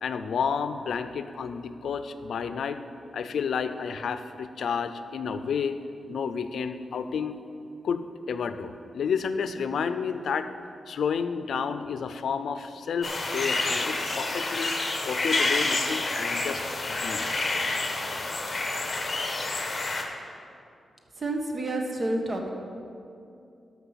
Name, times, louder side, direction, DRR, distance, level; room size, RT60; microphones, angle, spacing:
voice 1, 0.0-2.8 3.1-5.8 6.1-7.4 7.8-10.5 10.9-14.7 15.0-16.6 16.9-17.2, left 6 dB, 85° left, 10 dB, 0.5 m, -30 dB
sound 1, 13.0-20.0, left 2 dB, 35° left, 1.3 m, -28 dB
voice 2, 21.2-22.5, right 1 dB, 40° right, 2 dB, 1.3 m, -29 dB
13.0 x 5.9 x 5.7 m, 2.6 s
wide cardioid pair, 100°, 0 cm